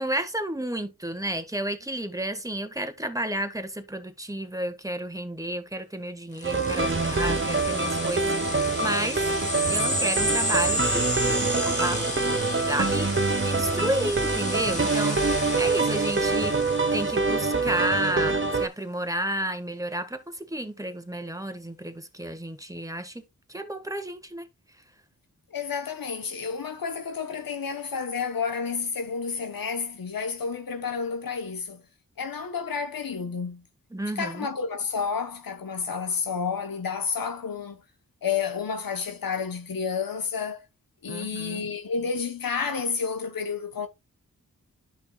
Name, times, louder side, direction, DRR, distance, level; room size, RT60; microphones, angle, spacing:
voice 1, 0.0-9.3 9.7-11.2 11.5-13.1 13.4-23.2 23.5-24.5 33.9-34.5 41.1-41.6, right 1 dB, 10° right, 1.5 m, -31 dB
sound 1, 6.4-17.5, equal, 20° left, 2.3 m, -32 dB
sound 2, 6.4-18.7, right 3 dB, 35° right, 1.0 m, -25 dB
voice 2, 25.5-31.8 32.2-33.6 34.2-37.8 38.2-40.6 41.0-43.9, left 5 dB, 75° left, 1.0 m, -30 dB
10.5 x 5.9 x 2.3 m
cardioid pair, 45°, 35 cm